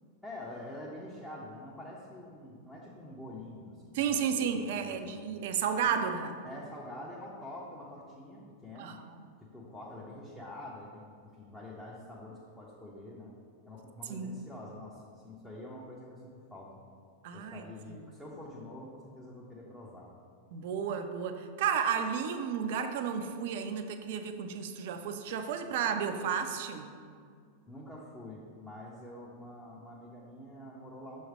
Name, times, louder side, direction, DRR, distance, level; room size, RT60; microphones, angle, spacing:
voice 1, 0.2-5.2 5.8-6.0 6.4-9.0 9.4-13.3 13.6-16.8 17.3-20.1 27.7-31.3, left 1 dB, 10° left, -6 dB, 0.7 m, -46 dB
voice 2, 3.9-6.4 8.8-9.2 14.1-14.4 17.2-18.0 20.5-26.9, right 7 dB, 50° right, 7 dB, 0.4 m, -33 dB
6.3 x 3.1 x 4.8 m, 2.1 s
figure-of-eight pair, 90°, 0 cm